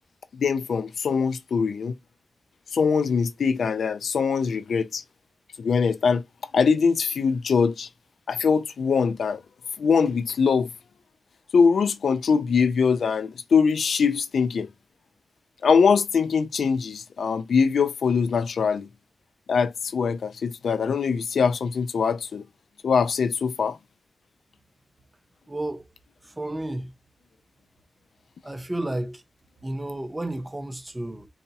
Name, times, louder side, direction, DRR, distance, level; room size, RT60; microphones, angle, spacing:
voice 1, 0.4-1.9 2.7-5.0 5.6-6.2 6.5-7.9 8.3-9.4 9.8-10.7 11.5-14.7 15.6-18.9 19.5-22.4 22.8-23.8, left 5 dB, 80° left, 0.3 m, -22 dB
voice 2, 25.5-25.8 26.2-26.9 28.4-29.2 29.6-31.3, right 1 dB, 15° right, 0.7 m, -32 dB
3.9 x 2.2 x 2.8 m
wide cardioid pair, 135°, 0 cm